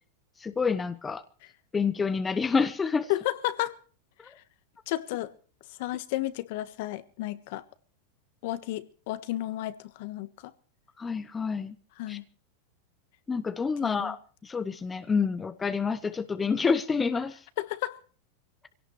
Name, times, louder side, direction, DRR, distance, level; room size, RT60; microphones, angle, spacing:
voice 1, 0.4-1.2 1.7-3.1 11.0-11.8 12.1-12.2 13.3-17.4, left 5 dB, 15° left, 0.8 m, -28 dB
voice 2, 3.1-3.7 4.9-5.3 5.8-7.6 8.4-10.3 12.0-12.2 13.8-14.1 17.6-18.0, left 16 dB, 55° left, 1.3 m, -32 dB
23.0 x 17.5 x 3.2 m
supercardioid pair, 150°, 0 cm